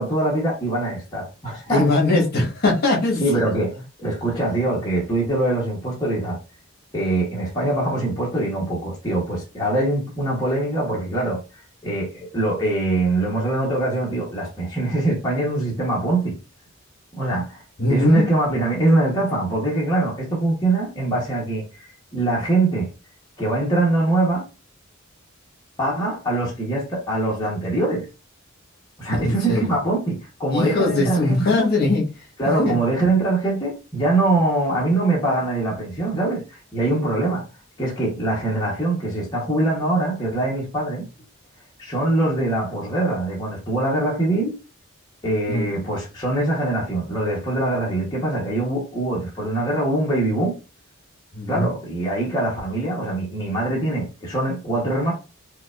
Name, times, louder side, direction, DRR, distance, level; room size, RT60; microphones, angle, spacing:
voice 1, 0.0-1.9 3.2-6.4 6.9-11.4 11.8-16.4 17.2-17.6 17.9-21.9 22.1-22.9 23.4-24.4 25.8-28.1 29.0-31.6 32.4-37.4 37.8-41.0 41.8-44.6 45.2-50.6 51.5-55.1, right 2 dB, 20° left, 1.0 m, -23 dB
voice 2, 1.7-3.2 17.8-18.3 29.1-29.8 30.5-32.0 32.6-32.8 45.5-45.8 51.3-51.7, left 2 dB, 45° left, 1.3 m, -21 dB
4.7 x 2.3 x 2.4 m
head